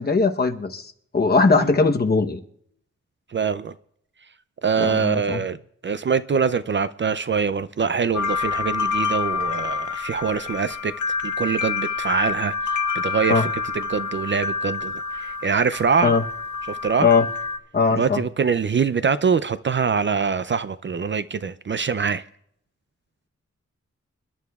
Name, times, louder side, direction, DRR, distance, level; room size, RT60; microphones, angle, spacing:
voice 1, 0.0-2.4 4.8-5.4 13.3-13.5 16.0-16.2 17.0-17.3 17.7-18.2, left 4 dB, 35° left, 0.9 m, -20 dB
voice 2, 3.3-3.7 4.6-5.6 5.8-10.9 11.2-13.5 13.7-16.2 16.7-17.1 17.9-22.2, right 6 dB, 40° right, 0.4 m, -24 dB
sound 1, 8.1-17.6, left 5 dB, 85° left, 0.9 m, -27 dB
28.5 x 11.5 x 2.4 m
wide cardioid pair, 160°, 29 cm